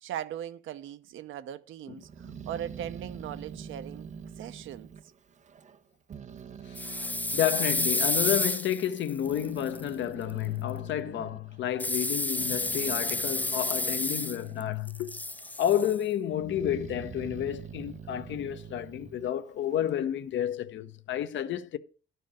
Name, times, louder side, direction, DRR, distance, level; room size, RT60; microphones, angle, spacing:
voice 1, 0.0-4.1 4.4-4.9, right 10 dB, 80° right, 0.7 m, -39 dB
Growling, 2.0-5.8 6.1-8.4 9.0-14.8 15.2-15.9 16.3-20.1, right 7 dB, 35° right, 0.6 m, -45 dB
voice 2, 6.7-7.0 7.3-15.1 15.6-21.8, left 10 dB, 70° left, 0.7 m, -30 dB
sound 1, 6.8-9.8 11.8-14.6 14.9-15.9, left 2 dB, 10° left, 0.4 m, -30 dB
11.5 x 4.5 x 6.2 m
cardioid pair, 90°, 20 cm